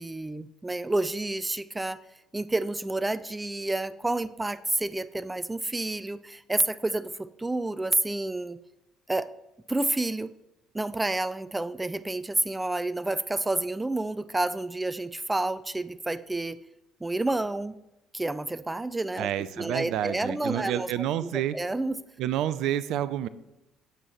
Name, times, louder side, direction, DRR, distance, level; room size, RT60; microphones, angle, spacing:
voice 1, 0.0-2.0 2.3-8.6 9.1-9.3 9.7-10.3 10.7-16.6 17.0-17.8 18.1-19.3 19.6-22.0, right 2 dB, 15° right, 15 dB, 0.5 m, -29 dB
voice 2, 19.2-21.6 22.2-23.3, right 11 dB, 60° right, 15 dB, 0.5 m, -29 dB
18.0 x 8.0 x 3.1 m, 0.91 s
figure-of-eight pair, 55°, 0 cm